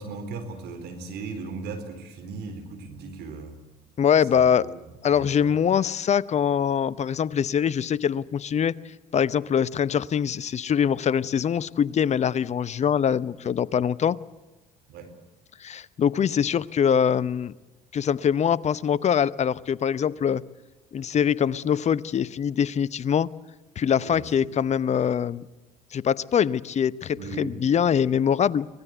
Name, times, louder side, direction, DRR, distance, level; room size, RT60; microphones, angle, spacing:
voice 1, 0.0-3.6 4.3-4.7 5.1-5.5 14.9-15.1 23.9-24.6 27.2-27.6, right 4 dB, 60° right, 6 dB, 4.2 m, -38 dB
voice 2, 4.0-4.7 5.0-8.8 9.1-14.2 15.6-17.5 17.9-20.4 20.9-23.3 23.8-25.4 25.9-28.7, left 8 dB, 35° left, 19 dB, 0.7 m, -23 dB
24.5 x 19.0 x 8.1 m, 1.1 s
hypercardioid pair, 60°, 19 cm